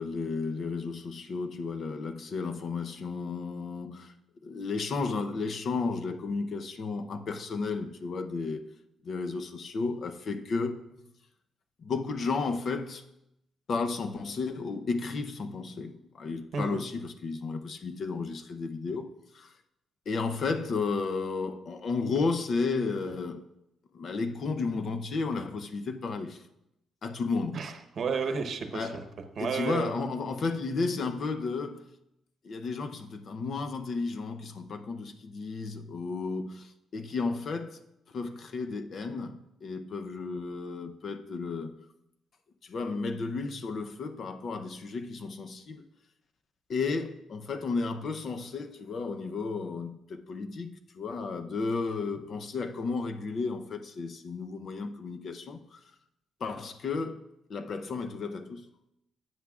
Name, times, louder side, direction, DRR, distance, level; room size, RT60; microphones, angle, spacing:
voice 1, 0.0-4.1 4.4-8.6 9.0-11.0 11.8-13.0 13.7-19.1 19.3-19.5 20.1-23.4 23.9-26.4 27.0-27.6 28.7-29.1 29.4-31.9 32.4-37.8 38.1-41.7 42.6-45.8 46.7-55.8 56.4-57.2 57.5-58.7, left 4 dB, 50° left, 0.7 m, -33 dB
voice 2, 27.5-29.0 29.4-29.9, right 5 dB, 50° right, 0.9 m, -32 dB
14.5 x 9.0 x 2.4 m
cardioid pair, 140°, 0 cm